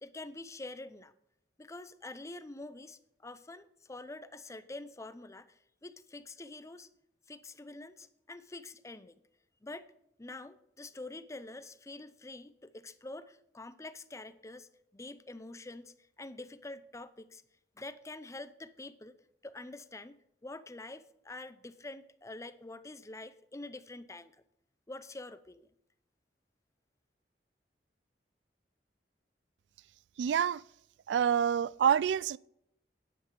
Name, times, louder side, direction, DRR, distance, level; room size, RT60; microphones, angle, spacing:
voice 1, 0.0-1.1 1.6-6.9 7.3-9.2 9.6-9.9 10.2-17.4 17.8-19.2 19.4-24.3 24.9-25.7, left 2 dB, 15° left, 0.6 m, -46 dB
voice 2, 30.2-30.6 31.1-32.4, right 8 dB, 85° right, 0.3 m, -27 dB
9.8 x 9.6 x 5.3 m
head